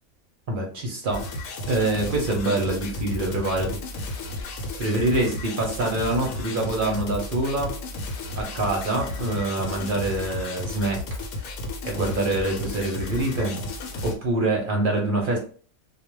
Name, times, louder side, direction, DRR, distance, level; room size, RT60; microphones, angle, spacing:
voice 1, 0.5-1.3 1.7-4.2 4.8-7.7 8.4-11.0 11.4-11.5 11.8-13.6 14.0-15.4, right 2 dB, 55° right, 1 dB, 0.6 m, -25 dB
sound 1, 1.1-14.1, left 2 dB, 85° left, 1.0 m, -33 dB
2.3 x 2.1 x 3.0 m, 0.42 s
omnidirectional pair, 1.4 m